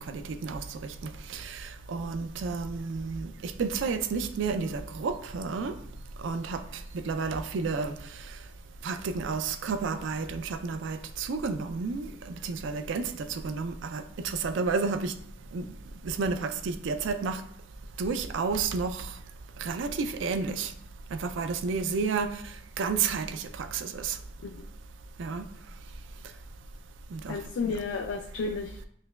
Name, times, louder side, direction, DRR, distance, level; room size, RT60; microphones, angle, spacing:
voice 1, 0.1-0.9 1.3-5.7 6.2-6.6 7.0-7.9 8.8-15.1 15.5-15.7 16.0-17.4 18.0-19.1 19.6-20.7 21.1-22.3 22.8-24.2 25.2-25.4 27.1-27.4 27.7-27.8, right 4 dB, 65° right, 10 dB, 0.4 m, -31 dB
voice 2, 27.3-28.9, left 4 dB, 60° left, 4 dB, 0.3 m, -33 dB
5.6 x 2.9 x 2.3 m, 0.68 s
head